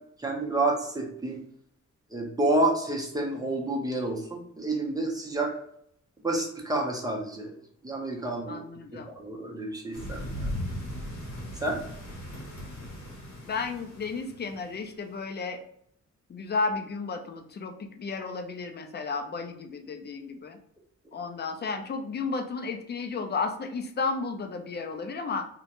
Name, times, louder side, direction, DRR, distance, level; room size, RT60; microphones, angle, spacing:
voice 1, 0.2-1.4 2.1-5.5 6.2-7.5 7.8-8.6 9.1-10.5 11.6-11.8, right 2 dB, 10° right, 0 dB, 0.6 m, -29 dB
voice 2, 8.5-9.1 13.4-15.6 16.3-20.6 21.1-25.5, left 4 dB, 35° left, 6 dB, 0.4 m, -33 dB
sound 1, 9.9-15.0, equal, 60° left, 1.1 m, -38 dB
2.4 x 2.1 x 2.8 m, 0.66 s
wide cardioid pair, 105°, 31 cm